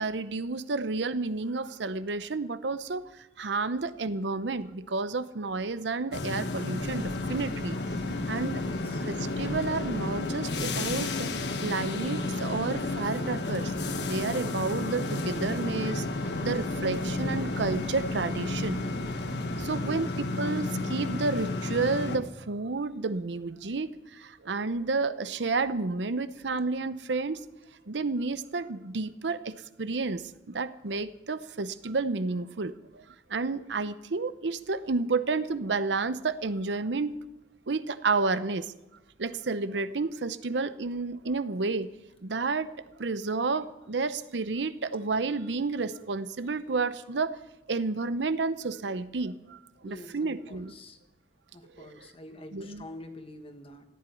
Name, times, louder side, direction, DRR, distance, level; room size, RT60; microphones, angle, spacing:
voice 1, 0.0-7.8 8.3-8.6 9.1-11.3 11.6-13.7 14.0-18.8 19.6-20.1 20.4-27.4 27.9-33.0 33.3-37.2 37.7-38.7 39.2-41.9 42.2-42.7 43.0-47.4 47.7-50.7 51.7-52.1 52.5-52.9, right 3 dB, 85° right, 13 dB, 0.8 m, -31 dB
sound 1, 6.1-22.2, left 2 dB, 75° left, 1.4 m, -32 dB
voice 2, 8.6-9.0 19.7-20.6 49.8-51.0 51.5-53.8, left 1 dB, 35° left, 7 dB, 1.6 m, -46 dB
15.0 x 10.0 x 9.1 m, 0.96 s
head